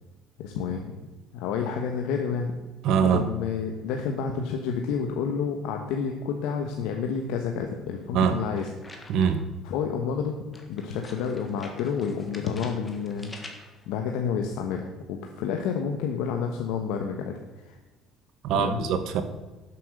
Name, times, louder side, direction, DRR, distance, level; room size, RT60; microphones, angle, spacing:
voice 1, 0.4-0.9 1.3-2.5 3.1-8.7 9.6-10.3 10.7-13.3 13.9-17.3 17.6-17.8 18.5-18.8, left 6 dB, 75° left, 3 dB, 1.2 m, -29 dB
voice 2, 2.8-3.3 8.1-8.4 9.1-9.4 18.4-19.2, right 7 dB, 55° right, 8 dB, 1.3 m, -23 dB
sound 1, 8.6-9.5 10.5-13.9, left 2 dB, 10° left, 1.5 m, -47 dB
11.5 x 7.6 x 6.6 m, 1.2 s
cardioid pair, 175°, 0 cm